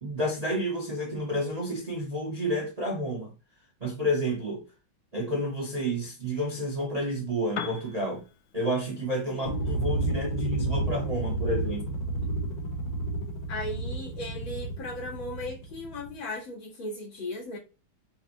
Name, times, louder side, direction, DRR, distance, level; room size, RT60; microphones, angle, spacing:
voice 1, 0.0-3.3 3.8-4.6 5.1-8.2 8.5-12.0, equal, 75° right, 0.3 m, -30 dB
Piano, 7.4-15.2, left 7 dB, 90° left, 0.8 m, -47 dB
sound 1, 9.4-16.1, right 2 dB, 30° left, 0.8 m, -31 dB
voice 2, 13.5-17.6, left 1 dB, 75° left, 2.7 m, -37 dB
5.4 x 2.6 x 2.9 m
omnidirectional pair, 2.2 m